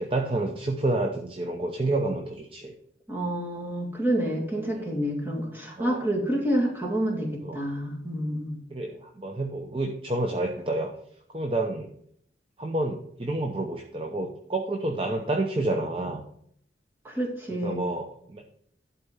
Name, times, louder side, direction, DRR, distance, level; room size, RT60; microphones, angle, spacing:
voice 1, 0.0-2.7 4.7-5.0 5.8-6.1 7.4-7.6 8.7-10.9 11.3-11.9 12.6-16.2 17.6-18.4, right 2 dB, 30° right, 3 dB, 0.7 m, -29 dB
voice 2, 3.1-8.6 17.0-17.9, right 1 dB, 10° right, -2 dB, 2.1 m, -28 dB
11.5 x 4.3 x 5.6 m, 0.67 s
head